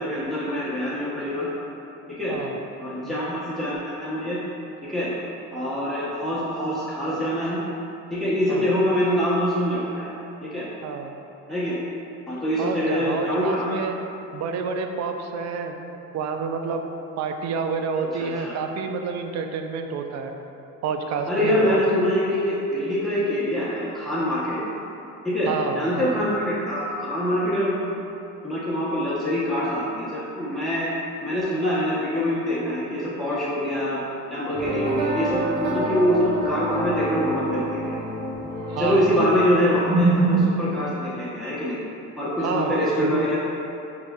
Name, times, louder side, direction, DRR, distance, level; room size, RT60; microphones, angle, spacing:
voice 1, 0.0-1.5 2.2-2.4 2.8-4.4 4.8-5.1 5.5-7.6 8.1-10.1 10.4-10.7 11.5-11.8 12.3-13.7 18.2-18.5 21.3-24.6 25.2-27.8 28.4-30.9 31.2-34.0 34.3-38.0 38.8-41.8 42.2-43.4, equal, ahead, -9 dB, 1.0 m, -24 dB
voice 2, 2.3-2.6 3.0-3.2 8.5-8.7 10.8-11.1 12.6-14.0 14.3-15.8 16.1-16.8 17.2-20.3 20.8-22.1 25.5-26.2 38.7-39.3 42.4-43.3, right 5 dB, 55° right, 5 dB, 0.4 m, -29 dB
sound 1, 34.5-40.8, right 1 dB, 75° right, 1.3 m, -29 dB
5.2 x 3.2 x 2.3 m, 2.9 s
supercardioid pair, 85°, 33 cm